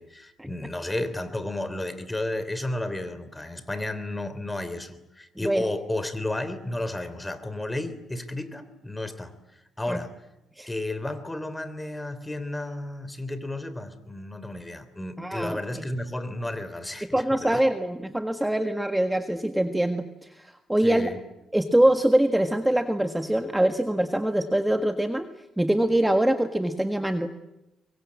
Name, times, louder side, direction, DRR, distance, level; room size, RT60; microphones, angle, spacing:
voice 1, 0.0-10.3 10.7-17.6 20.8-21.2, left 1 dB, 15° left, 12 dB, 3.3 m, -33 dB
voice 2, 15.2-15.9 17.1-21.1 21.5-25.3 25.6-27.3, right 1 dB, 5° right, 6 dB, 1.7 m, -24 dB
24.5 x 23.0 x 8.6 m, 0.93 s
cardioid pair, 90°, 0 cm